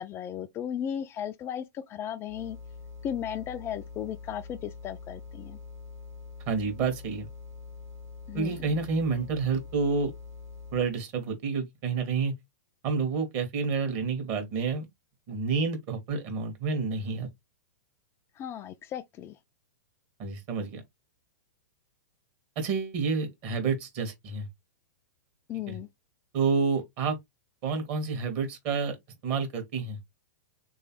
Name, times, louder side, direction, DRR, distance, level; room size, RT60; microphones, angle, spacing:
voice 1, 0.0-2.6 3.0-5.6 8.3-8.7 18.4-19.4 25.5-25.9, left 9 dB, 25° left, 0.4 m, -35 dB
sound 1, 2.3-11.0, left 4 dB, 25° right, 0.7 m, -44 dB
voice 2, 6.5-7.3 8.3-10.1 10.7-12.3 12.8-14.8 15.3-17.3 20.2-20.8 22.5-24.5 25.7-25.8 26.3-27.2 27.6-28.9 29.2-30.0, right 4 dB, 40° right, 1.4 m, -29 dB
3.3 x 3.1 x 2.9 m
figure-of-eight pair, 105°, 10 cm